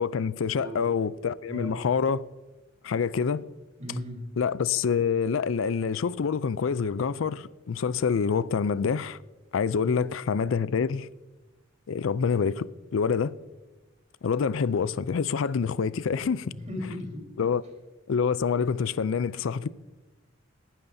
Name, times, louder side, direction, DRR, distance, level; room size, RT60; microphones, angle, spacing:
voice 1, 0.0-2.2 2.8-3.4 4.4-9.2 9.5-11.1 11.9-13.3 14.2-16.5 17.4-17.6 18.1-19.7, left 6 dB, 75° left, 0.4 m, -26 dB
voice 2, 0.5-0.9 1.5-1.9 3.8-4.3 16.5-17.3, left 1 dB, 35° right, 3.9 m, -36 dB
18.5 x 12.5 x 2.7 m
head